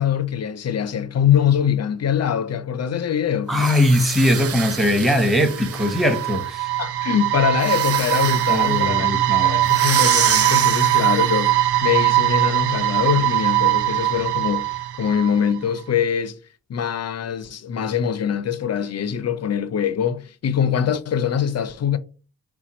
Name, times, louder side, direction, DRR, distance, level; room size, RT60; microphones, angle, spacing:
voice 1, 0.0-3.5 6.8-9.1 9.4-16.4 16.7-22.0, left 8 dB, 45° left, 0.5 m, -23 dB
voice 2, 3.5-6.7 8.5-9.6, left 1 dB, ahead, 0.9 m, -20 dB
sound 1, 3.5-6.5 7.6-8.7 9.6-11.3, right 7 dB, 40° right, 0.5 m, -27 dB
sound 2, 5.5-15.6, right 14 dB, 80° right, 0.6 m, -21 dB
4.2 x 2.2 x 4.1 m
cardioid pair, 85°, 38 cm